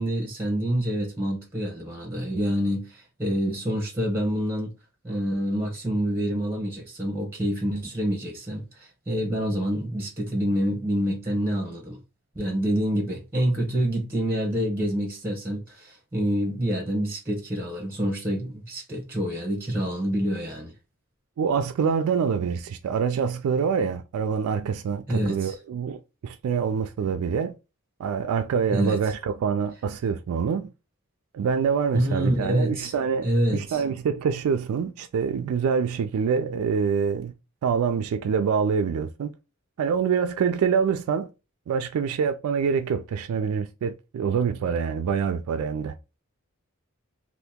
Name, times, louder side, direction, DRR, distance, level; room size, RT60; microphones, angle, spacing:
voice 1, 0.0-4.7 5.0-12.0 12.3-20.7 25.1-25.5 28.7-29.0 31.9-32.9 33.2-33.8, equal, 10° right, 0.8 m, -27 dB
voice 2, 21.4-27.5 28.0-30.7 31.3-37.3 37.6-39.3 39.8-41.3 41.7-45.9, right 6 dB, 80° right, 0.3 m, -25 dB
2.8 x 2.5 x 3.5 m
head